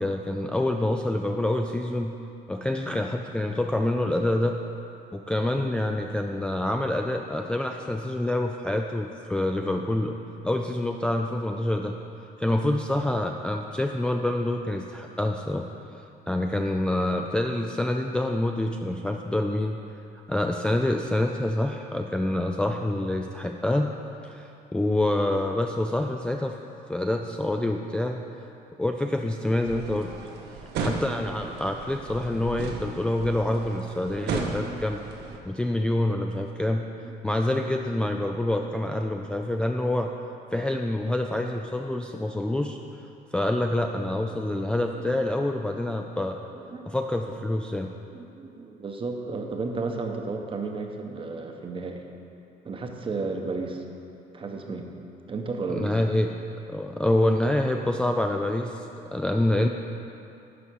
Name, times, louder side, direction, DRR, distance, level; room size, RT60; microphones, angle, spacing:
voice 1, 0.0-2.2 2.5-4.6 5.1-10.2 10.4-12.0 12.4-15.7 15.9-19.8 20.3-23.9 24.2-26.6 26.9-28.2 28.8-30.1 30.8-35.0 35.4-36.9 37.2-40.1 40.5-42.8 43.3-46.4 46.9-47.9 55.7-56.3 56.7-58.9 59.1-59.7, left 1 dB, 5° left, 2 dB, 0.3 m, -26 dB
sound 1, 29.6-35.4, right 4 dB, 75° right, 1.0 m, -35 dB
voice 2, 44.3-45.1 46.6-46.9 48.1-52.0 52.6-53.8 54.3-54.9 55.3-56.0, right 3 dB, 30° right, 3 dB, 0.9 m, -34 dB
11.0 x 4.3 x 6.3 m, 2.7 s
cardioid pair, 110°, 17 cm